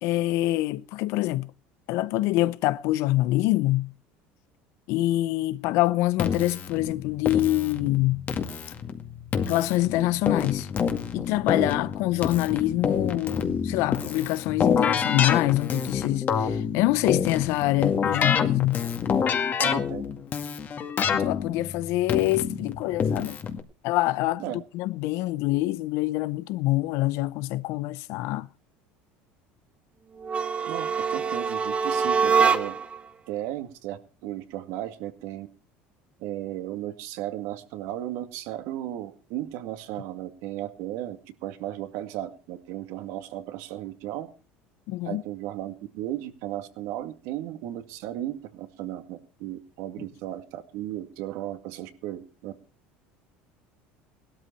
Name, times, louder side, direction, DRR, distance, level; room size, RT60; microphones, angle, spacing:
voice 1, 0.0-1.5 1.9-3.9 4.9-8.3 9.5-10.7 11.1-18.9 21.1-23.4 23.8-24.4 24.7-28.5 44.9-45.2, left 17 dB, 65° left, 0.7 m, -25 dB
Keyboard (musical), 6.2-23.6, left 7 dB, 40° left, 2.1 m, -28 dB
voice 2, 19.6-20.0 24.4-24.6 30.7-32.8 33.3-35.5 36.2-41.2 41.4-44.3 45.1-52.5, right 13 dB, 70° right, 2.1 m, -35 dB
sound 1, 30.2-33.0, right 6 dB, 25° right, 1.4 m, -24 dB
17.5 x 12.5 x 4.5 m
supercardioid pair, 110°, 5 cm